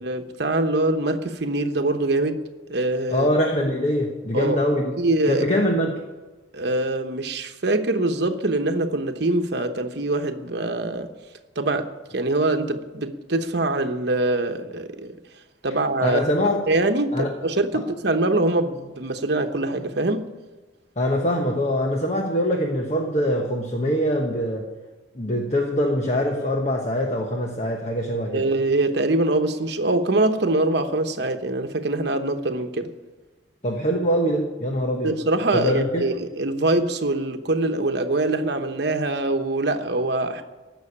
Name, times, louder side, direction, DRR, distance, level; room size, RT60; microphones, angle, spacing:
voice 1, 0.0-3.3 4.3-4.6 5.0-5.5 6.5-11.1 11.6-15.2 15.6-16.2 16.7-20.3 28.3-32.9 35.0-40.4, right 2 dB, 60° right, 1.0 m, -23 dB
voice 2, 3.1-4.9 5.3-6.0 16.0-16.6 17.1-17.3 21.0-24.7 25.1-28.5 33.6-35.2 35.5-36.1, equal, 35° left, 1.2 m, -23 dB
15.5 x 6.3 x 9.9 m
head